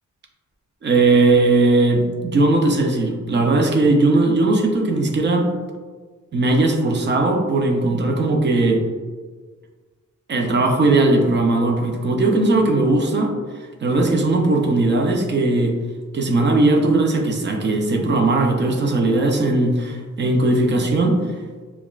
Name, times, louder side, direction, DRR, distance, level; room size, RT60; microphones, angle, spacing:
voice 1, 0.8-5.5 6.3-8.8 10.3-13.3 13.8-15.8 16.1-21.2, right 2 dB, 35° right, 2 dB, 0.5 m, -18 dB
5.7 x 2.3 x 2.4 m, 1.4 s
wide cardioid pair, 155°, 30 cm